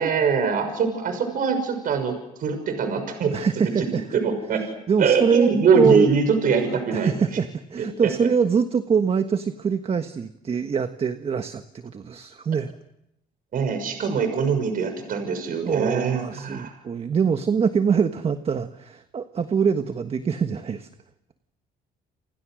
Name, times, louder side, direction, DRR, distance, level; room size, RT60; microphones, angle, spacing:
voice 1, 0.0-2.1 2.4-3.3 3.8-4.6 5.0-7.1 7.8-8.1 13.5-16.7, right 5 dB, 55° right, 7 dB, 6.4 m, -23 dB
voice 2, 3.3-4.1 4.5-6.1 6.6-12.7 15.6-20.9, right 6 dB, 35° right, 8 dB, 1.4 m, -24 dB
29.5 x 28.5 x 6.5 m, 0.84 s
cardioid pair, 110°, 17 cm